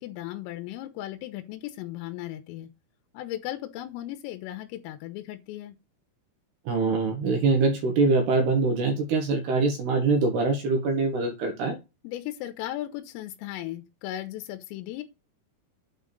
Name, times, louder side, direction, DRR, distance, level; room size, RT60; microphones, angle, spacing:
voice 1, 0.0-2.7 3.2-5.7 12.0-15.0, left 14 dB, 90° left, 3.5 m, -36 dB
voice 2, 6.7-11.8, right 3 dB, 65° right, 2.8 m, -24 dB
8.9 x 3.8 x 6.9 m
omnidirectional pair, 6.0 m